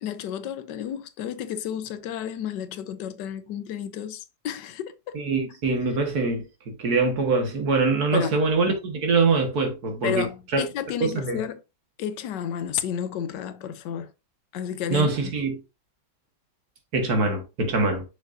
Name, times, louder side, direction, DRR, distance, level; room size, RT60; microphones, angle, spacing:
voice 1, 0.0-5.2 8.1-8.4 10.0-11.6 12.0-14.1 14.5-15.3, left 9 dB, 85° left, 1.3 m, -31 dB
voice 2, 5.1-10.6 11.0-11.4 14.9-15.6 16.9-18.0, right 3 dB, 60° right, 2.1 m, -24 dB
6.6 x 6.4 x 2.6 m
omnidirectional pair, 1.9 m